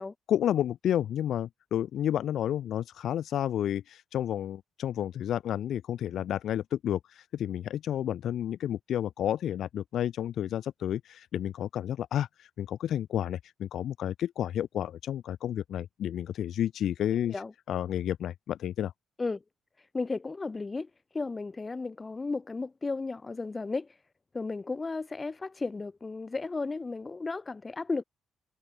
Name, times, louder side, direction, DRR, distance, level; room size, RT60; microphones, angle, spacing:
voice 1, 0.3-17.4 17.7-18.9, left 10 dB, 70° left, 0.3 m, -31 dB
voice 2, 19.9-20.9 21.1-23.9 24.3-28.0, left 3 dB, 25° left, 0.9 m, -34 dB
cardioid pair, 90°, 0 cm